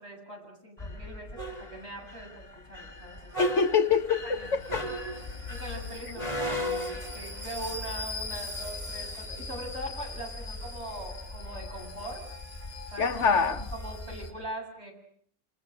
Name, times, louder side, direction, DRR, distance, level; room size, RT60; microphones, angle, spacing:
voice 1, 0.0-3.2 4.2-4.5 5.5-12.2 12.9-14.9, right 1 dB, 50° right, 0 dB, 8.1 m, -41 dB
sound 1, 0.8-14.3, left 1 dB, 20° left, 5.1 m, -37 dB
voice 2, 3.4-4.8 13.0-13.7, left 5 dB, 55° left, 6 dB, 1.6 m, -25 dB
27.5 x 27.5 x 6.6 m, 0.64 s
omnidirectional pair, 1.5 m